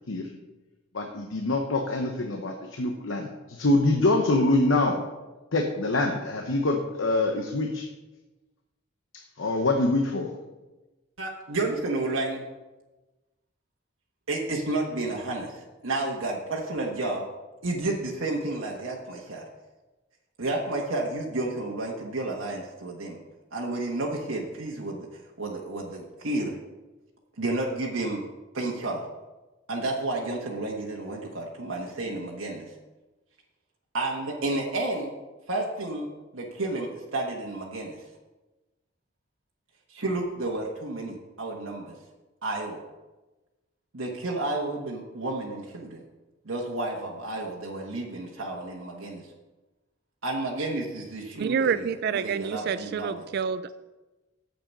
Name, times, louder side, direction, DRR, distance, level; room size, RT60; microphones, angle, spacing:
voice 1, 0.9-5.0 5.5-7.9 9.4-10.3, left 2 dB, 70° left, 3 dB, 0.9 m, -25 dB
voice 2, 11.2-12.4 14.3-17.2 17.6-19.4 20.4-23.2 23.5-25.1 25.4-26.6 27.4-28.2 28.5-29.0 29.7-32.7 33.9-35.1 35.5-36.1 36.3-38.0 39.9-42.0 42.4-42.8 43.9-46.0 46.4-49.2 50.2-53.3, right 2 dB, 90° right, -2 dB, 1.3 m, -31 dB
voice 3, 51.4-53.7, right 6 dB, 55° right, 14 dB, 0.4 m, -28 dB
9.0 x 7.7 x 5.4 m, 1.1 s
head